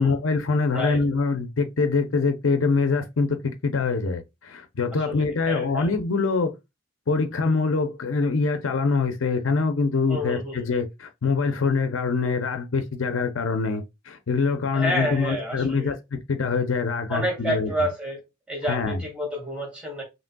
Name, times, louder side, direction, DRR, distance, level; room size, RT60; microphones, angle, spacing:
voice 1, 0.0-6.5 7.1-17.7 18.7-19.0, left 4 dB, 70° left, 0.6 m, -24 dB
voice 2, 5.1-6.0 10.1-10.6 14.7-15.9 17.1-18.2 18.5-20.0, equal, 5° right, 1.8 m, -29 dB
5.1 x 3.1 x 2.2 m
head